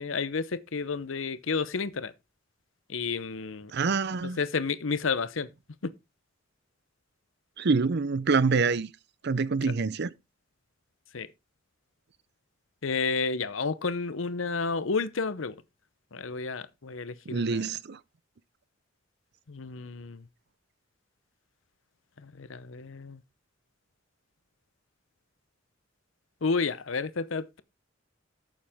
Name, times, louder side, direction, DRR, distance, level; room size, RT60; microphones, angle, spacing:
voice 1, 0.0-2.1 2.9-3.7 4.4-5.5 11.1-11.3 12.8-15.5 16.1-17.6 19.5-20.2 22.4-23.2 26.4-27.6, left 4 dB, 75° left, 0.8 m, -31 dB
voice 2, 3.7-4.4 7.6-8.9 9.2-10.1 17.3-18.0, right 4 dB, 55° right, 0.6 m, -26 dB
13.5 x 7.3 x 3.6 m
head